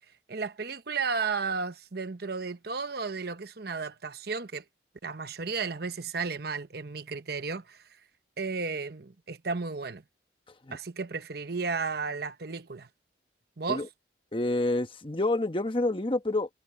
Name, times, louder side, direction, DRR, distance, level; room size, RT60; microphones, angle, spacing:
voice 1, 0.3-4.6 5.0-7.8 8.4-10.0 10.7-12.9 13.6-13.8, right 4 dB, 55° right, 1.0 m, -33 dB
voice 2, 14.3-16.5, left 2 dB, 30° left, 1.2 m, -28 dB
head